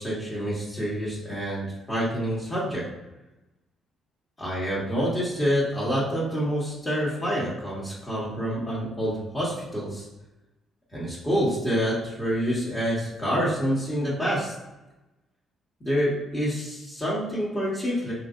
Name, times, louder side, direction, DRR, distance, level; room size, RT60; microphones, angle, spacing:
voice 1, 0.0-2.9 4.4-10.1 10.9-14.5 15.8-18.1, equal, 25° left, -8 dB, 1.3 m, -27 dB
3.0 x 2.8 x 2.5 m, 1.0 s
hypercardioid pair, 55°, 0 cm